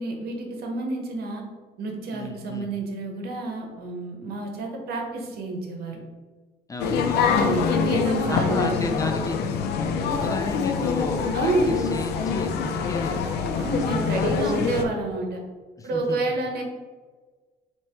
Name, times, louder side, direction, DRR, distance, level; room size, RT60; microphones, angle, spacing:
voice 1, 0.0-1.4 1.8-6.0 7.3-8.8 11.3-11.8 13.6-15.4 15.8-16.6, right 2 dB, 65° right, 1 dB, 1.0 m, -29 dB
voice 2, 2.1-2.7 6.7-8.0 8.3-13.3 13.9-14.6 15.8-16.2 16.5-16.6, left 2 dB, 20° left, 4 dB, 0.4 m, -33 dB
sound 1, 6.8-14.8, left 6 dB, 75° left, 0.5 m, -25 dB
3.2 x 3.0 x 4.4 m, 1.4 s
cardioid pair, 110°, 17 cm